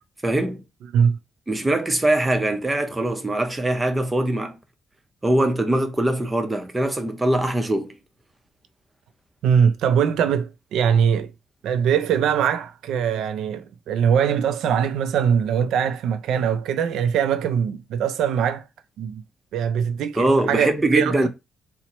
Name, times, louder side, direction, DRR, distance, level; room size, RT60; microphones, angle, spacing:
voice 1, 0.2-0.6 1.5-4.6 5.2-7.9 20.2-21.3, right 1 dB, 15° right, 0.7 m, -22 dB
voice 2, 9.4-11.3 11.6-18.7 19.0-19.2 19.5-21.3, right 8 dB, 80° right, 0.4 m, -22 dB
4.3 x 2.1 x 2.9 m
cardioid pair, 90°, 0 cm